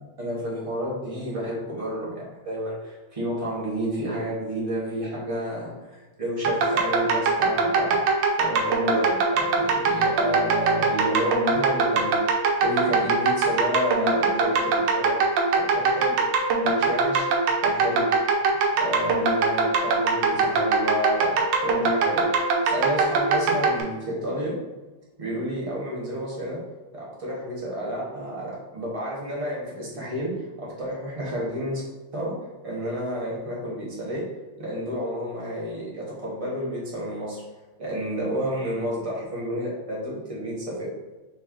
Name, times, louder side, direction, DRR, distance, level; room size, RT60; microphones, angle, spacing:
voice 1, 0.2-8.0 8.4-12.1 12.6-15.2 15.5-16.2 16.6-17.3 17.6-18.1 18.7-21.4 21.6-22.3 22.6-24.6 25.2-26.6 26.9-31.8 32.1-32.4 32.6-34.3 34.6-37.4 37.8-41.0, equal, 25° right, -6 dB, 1.0 m, -30 dB
sound 1, 6.4-23.8, right 4 dB, 90° right, 1.3 m, -22 dB
3.4 x 3.2 x 3.6 m, 1.2 s
omnidirectional pair, 1.9 m